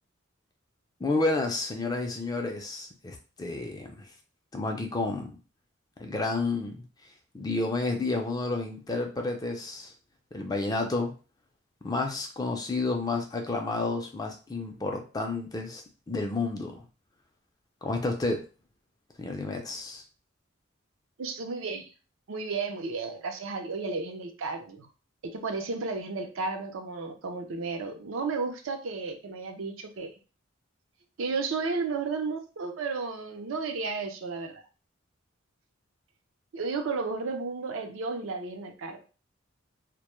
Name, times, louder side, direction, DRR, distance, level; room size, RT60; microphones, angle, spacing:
voice 1, 1.0-4.1 4.5-5.4 6.0-6.8 7.3-9.9 10.3-11.1 11.8-16.8 17.8-18.5 19.2-20.0, left 3 dB, 20° left, 3 dB, 0.4 m, -30 dB
voice 2, 21.2-21.9 22.3-24.9 25.2-30.1 31.2-34.6 36.5-39.0, right 4 dB, 80° right, 5 dB, 0.5 m, -33 dB
2.1 x 2.1 x 3.0 m, 0.34 s
head